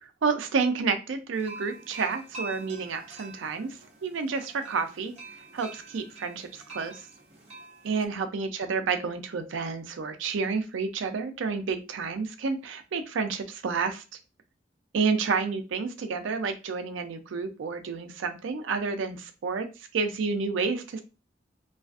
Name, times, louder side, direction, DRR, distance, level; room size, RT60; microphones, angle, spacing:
voice 1, 0.0-3.7 4.0-5.1 5.5-7.1 7.8-14.0 14.9-19.7 19.9-21.0, right 5 dB, 80° right, 8 dB, 0.4 m, -30 dB
sound 1, 1.3-8.1, right 3 dB, 35° right, 0.6 m, -46 dB
2.4 x 2.3 x 2.3 m, 0.31 s
head